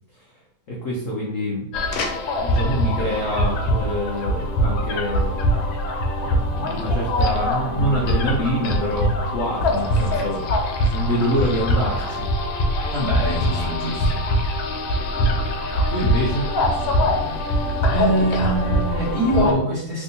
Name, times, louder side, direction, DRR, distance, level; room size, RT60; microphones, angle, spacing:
voice 1, 0.7-1.7 2.4-5.6 6.2-10.6 10.9-12.3 15.9-16.5, equal, 70° left, -3 dB, 0.7 m, -26 dB
sound 1, 1.7-19.5, left 1 dB, 90° left, 1.4 m, -23 dB
voice 2, 12.9-14.3 17.9-20.0, right 2 dB, 40° right, -7 dB, 1.3 m, -23 dB
3.5 x 2.6 x 2.7 m, 0.83 s
omnidirectional pair, 2.1 m